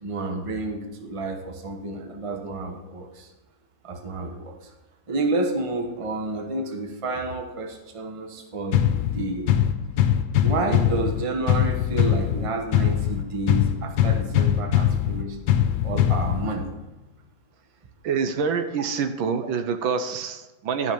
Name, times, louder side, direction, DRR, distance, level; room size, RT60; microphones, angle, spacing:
voice 1, 0.0-3.3 3.8-4.6 5.1-9.5 10.4-15.4 15.8-16.7, right 2 dB, 25° right, 3 dB, 0.8 m, -30 dB
sound 1, 8.7-16.7, left 10 dB, 90° left, 1.4 m, -22 dB
voice 2, 18.0-20.9, right 6 dB, 90° right, 8 dB, 1.6 m, -26 dB
12.5 x 5.8 x 5.2 m, 1.1 s
omnidirectional pair, 2.1 m